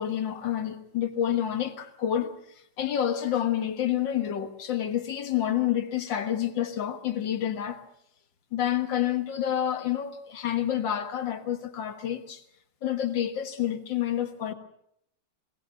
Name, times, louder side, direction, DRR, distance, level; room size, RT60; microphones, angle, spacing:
voice 1, 0.0-2.3 2.8-7.8 8.5-12.4 12.8-14.5, left 10 dB, 60° left, 2.1 m, -28 dB
24.0 x 19.0 x 6.5 m
omnidirectional pair, 2.4 m